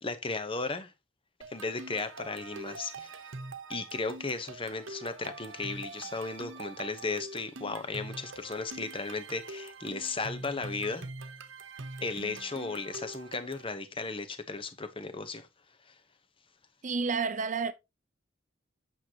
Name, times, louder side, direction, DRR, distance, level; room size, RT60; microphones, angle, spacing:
voice 1, 0.0-0.9 1.5-3.3 3.7-11.1 12.0-15.5 15.8-16.0, left 3 dB, 25° left, 0.9 m, -35 dB
sound 1, 1.4-13.7, right 3 dB, 75° right, 0.9 m, -44 dB
voice 2, 16.8-17.7, right 4 dB, 40° right, 0.7 m, -30 dB
8.5 x 6.4 x 2.9 m
head